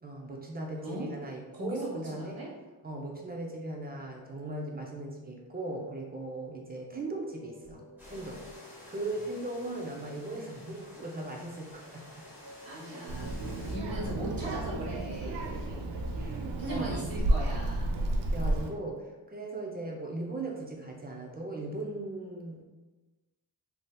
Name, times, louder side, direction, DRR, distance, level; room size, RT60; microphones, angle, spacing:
voice 1, 0.0-2.4 2.8-12.1 15.2-15.8 16.2-17.0 18.3-19.0 19.3-22.6, right 2 dB, 25° right, -1 dB, 0.4 m, -38 dB
voice 2, 1.5-2.5 12.6-15.4 16.6-17.9, right 1 dB, 55° right, -6 dB, 1.2 m, -38 dB
sound 1, 7.1-18.7, equal, 65° left, 0.8 m, -51 dB
sound 2, 8.0-13.8, left 1 dB, 5° right, 0.7 m, -51 dB
Child speech kid speaking, 13.1-18.7, right 1 dB, 90° right, 0.5 m, -32 dB
3.3 x 2.7 x 2.2 m, 1.2 s
wide cardioid pair, 155°, 42 cm